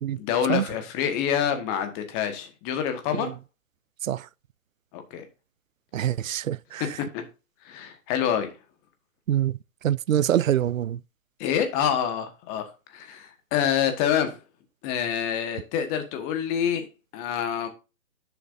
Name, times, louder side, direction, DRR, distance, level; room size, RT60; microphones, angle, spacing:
voice 1, 0.1-3.3 4.9-5.3 7.0-7.2 7.6-8.6 11.4-14.4 14.8-16.9 17.1-17.7, left 9 dB, 20° left, 1.3 m, -27 dB
voice 2, 5.9-7.0 9.3-11.0, right 11 dB, 70° right, 0.5 m, -25 dB
10.5 x 6.9 x 2.6 m
figure-of-eight pair, 135°, 41 cm